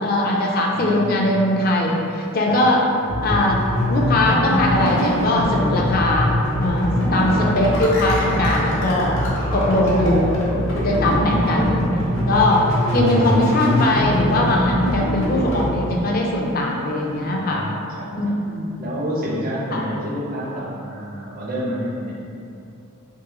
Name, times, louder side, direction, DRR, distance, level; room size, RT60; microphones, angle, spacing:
voice 1, 0.0-2.8 3.2-3.6 3.9-9.1 9.5-10.3 10.8-11.9 12.3-12.6 12.9-17.7 18.1-18.8 19.7-19.8, left 1 dB, 45° left, -1 dB, 0.4 m, -20 dB
voice 2, 0.7-1.3 2.4-3.0 7.0-7.7 9.6-10.1 11.1-12.3 17.0-18.4 18.8-22.1, equal, 45° right, -5 dB, 0.6 m, -29 dB
sound 1, 3.1-15.7, equal, 65° left, 0.8 m, -23 dB
3.6 x 2.7 x 2.9 m, 2.6 s
head